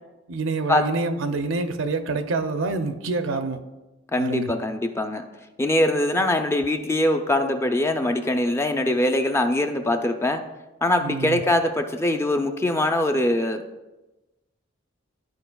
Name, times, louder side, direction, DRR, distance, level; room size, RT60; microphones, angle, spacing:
voice 1, 0.3-3.6 4.2-4.5 11.0-11.4, right 3 dB, 80° right, 8 dB, 0.6 m, -27 dB
voice 2, 4.1-5.2 5.6-10.4 10.8-13.6, left 1 dB, 15° left, 6 dB, 0.4 m, -22 dB
12.0 x 4.9 x 2.3 m, 1.1 s
head